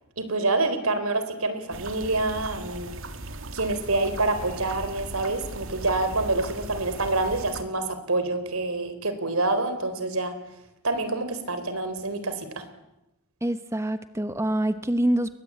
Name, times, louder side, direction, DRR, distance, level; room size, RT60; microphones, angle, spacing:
voice 1, 0.2-2.9 3.5-10.4 10.8-12.6, right 2 dB, 85° right, 10 dB, 4.0 m, -27 dB
sound 1, 1.7-7.6, right 2 dB, 65° right, 2.3 m, -38 dB
voice 2, 13.4-15.3, right 1 dB, 15° right, 10 dB, 0.9 m, -25 dB
30.0 x 22.0 x 8.7 m, 0.91 s
head